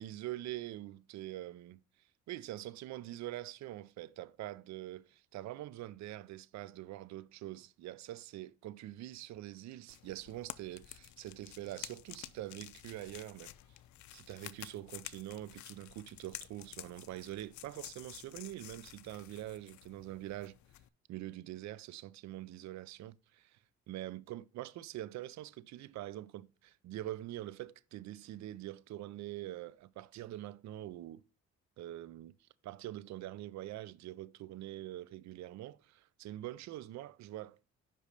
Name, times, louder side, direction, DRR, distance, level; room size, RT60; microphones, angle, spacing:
voice 1, 0.0-1.8 2.3-13.5 14.1-20.6 21.1-23.6 23.9-31.2 31.8-37.6, right 14 dB, 65° right, 0.4 m, -44 dB
sound 1, 9.9-20.9, left 15 dB, 70° left, 0.5 m, -51 dB
5.4 x 5.1 x 5.0 m
cardioid pair, 90°, 30 cm